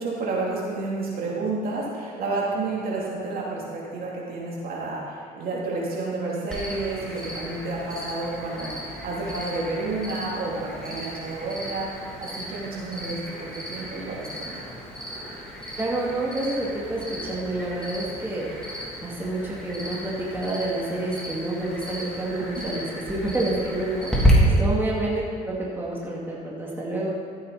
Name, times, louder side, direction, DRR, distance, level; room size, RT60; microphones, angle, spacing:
voice 1, 0.0-11.9 12.2-14.6 22.5-22.6 24.5-24.6, right 3 dB, 60° right, -4 dB, 3.1 m, -30 dB
Cricket, 6.5-24.3, equal, 5° left, 2.7 m, -33 dB
voice 2, 15.8-18.6 19.0-27.1, right 2 dB, 10° right, -5 dB, 2.2 m, -29 dB
14.0 x 8.7 x 4.1 m, 2.4 s
cardioid pair, 110°, 17 cm